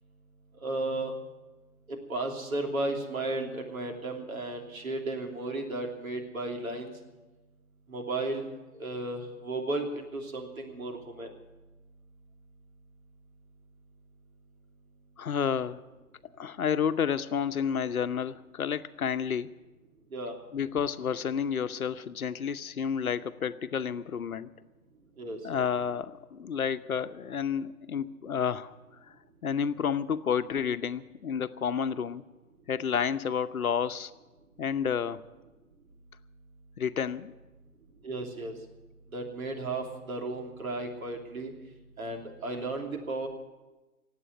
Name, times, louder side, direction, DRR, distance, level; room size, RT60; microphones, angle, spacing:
voice 1, 0.6-1.1 1.9-6.9 7.9-8.4 8.8-11.3 20.1-20.3 25.2-25.4 38.0-38.5 39.1-41.5 42.0-43.3, right 2 dB, 65° right, 2 dB, 3.2 m, -34 dB
voice 2, 15.2-15.8 16.4-19.6 20.5-24.5 25.4-28.7 29.1-29.2 29.4-32.2 32.7-34.1 34.6-35.2 36.8-37.3, left 7 dB, 70° left, 12 dB, 0.9 m, -30 dB
17.5 x 8.4 x 9.5 m, 1.1 s
figure-of-eight pair, 125°, 44 cm